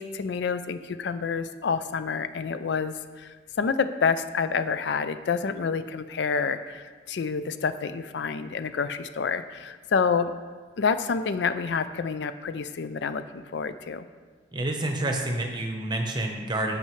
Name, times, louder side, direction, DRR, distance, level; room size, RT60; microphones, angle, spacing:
voice 1, 0.0-3.3 3.6-10.3 10.8-14.0, left 5 dB, 70° left, 11 dB, 0.4 m, -28 dB
voice 2, 14.5-16.8, right 1 dB, 25° right, 3 dB, 0.8 m, -28 dB
14.5 x 5.3 x 3.2 m, 1.5 s
head